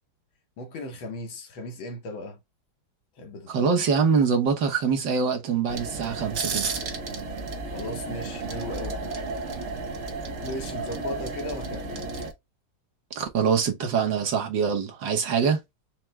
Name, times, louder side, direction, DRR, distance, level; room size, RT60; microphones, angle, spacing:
voice 1, 0.6-2.4 3.2-3.9 7.7-9.0 10.4-12.3, left 1 dB, 75° left, 1.9 m, -37 dB
voice 2, 3.5-6.7 13.1-15.6, right 6 dB, 65° right, 1.6 m, -24 dB
sound 1, 5.7-12.3, right 3 dB, 50° right, 0.9 m, -33 dB
5.8 x 2.2 x 3.2 m
omnidirectional pair, 2.2 m